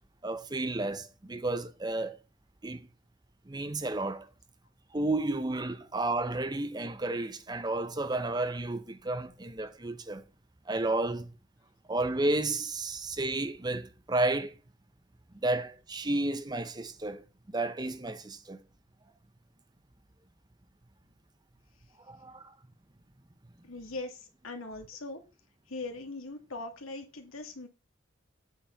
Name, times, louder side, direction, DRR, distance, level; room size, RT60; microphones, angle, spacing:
voice 1, 0.2-2.2 2.6-2.9 3.5-4.3 4.9-10.2 10.7-11.3 11.9-14.5 15.4-18.6 22.1-22.5, right 2 dB, 20° right, 0.7 m, -32 dB
voice 2, 23.6-25.2 25.7-27.7, left 2 dB, 85° left, 2.2 m, -40 dB
9.0 x 4.7 x 7.0 m
head